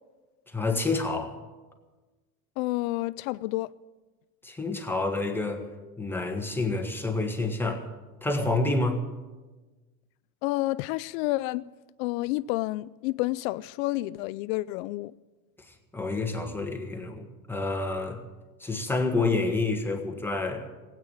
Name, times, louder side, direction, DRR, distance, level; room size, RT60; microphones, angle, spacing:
voice 1, 0.5-1.4 4.4-5.7 6.0-7.9 8.2-9.0 15.7-18.2 18.6-20.7, left 3 dB, 5° left, 1.6 m, -28 dB
voice 2, 2.6-3.7 10.4-11.6 12.0-15.1, left 19 dB, 70° left, 0.5 m, -29 dB
17.0 x 9.0 x 8.9 m
supercardioid pair, 135°, 42 cm